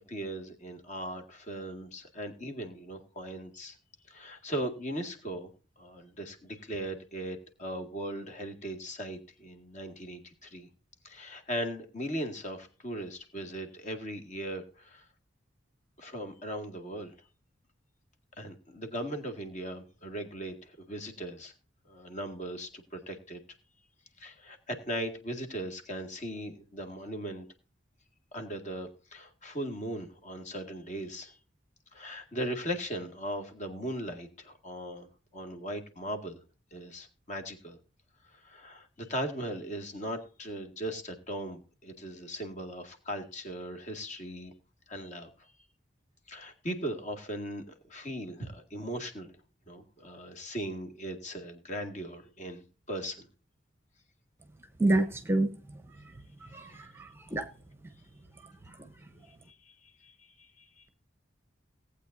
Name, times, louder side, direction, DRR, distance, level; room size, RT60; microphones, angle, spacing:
voice 1, 0.0-3.8 4.1-5.5 5.8-10.7 11.0-15.0 16.0-17.1 18.4-21.5 21.9-23.4 24.2-27.5 28.3-31.4 31.9-35.1 35.3-36.4 36.7-37.8 38.4-44.5 44.9-45.3 46.3-49.3 49.7-53.3 59.3-60.9, right 1 dB, 40° left, 2.0 m, -38 dB
voice 2, 54.8-55.5 56.5-57.5, right 2 dB, 15° right, 0.9 m, -28 dB
18.5 x 8.5 x 2.6 m
head